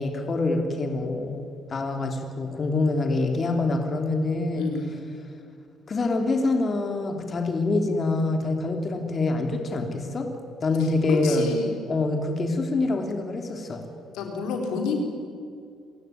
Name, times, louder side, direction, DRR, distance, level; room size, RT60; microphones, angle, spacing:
voice 1, 0.0-4.7 5.9-10.3 10.6-11.5 11.9-13.8, left 2 dB, 40° left, 4 dB, 3.2 m, -25 dB
voice 2, 4.5-4.9 11.1-11.8 14.1-15.0, left 5 dB, 80° left, 3 dB, 4.1 m, -29 dB
28.0 x 16.0 x 9.5 m, 2.4 s
supercardioid pair, 70°, 0 cm